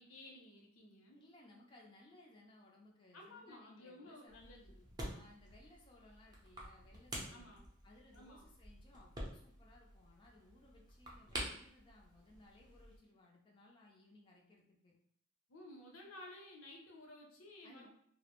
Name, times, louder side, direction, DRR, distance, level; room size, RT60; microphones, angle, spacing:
voice 1, 0.0-1.2 3.1-4.9 7.3-7.7 8.1-8.5 15.5-17.9, left 1 dB, 85° left, 0 dB, 0.7 m, -55 dB
voice 2, 1.1-4.4 5.0-7.6 7.8-15.0 17.6-17.9, left 2 dB, 25° left, -2 dB, 0.4 m, -63 dB
sound 1, 4.3-13.0, right 1 dB, 20° right, 0.6 m, -49 dB
2.4 x 2.0 x 2.9 m, 0.66 s
head